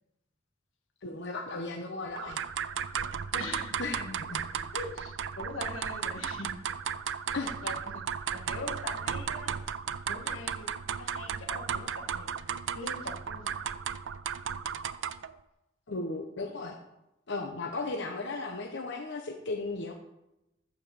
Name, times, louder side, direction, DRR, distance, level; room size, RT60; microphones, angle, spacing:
voice 1, 1.0-2.4 3.8-4.4 7.3-7.5 15.9-16.7 17.3-19.9, left 3 dB, 60° left, 3 dB, 1.0 m, -35 dB
sound 1, 2.2-15.3, right 7 dB, 65° right, 0.5 m, -35 dB
voice 2, 3.3-3.8 4.5-6.6 7.6-8.0 8.3-9.5 10.1-10.7 11.0-12.3 12.7-13.5, left 3 dB, 85° left, 3 dB, 1.7 m, -42 dB
14.5 x 5.1 x 7.0 m, 0.92 s
head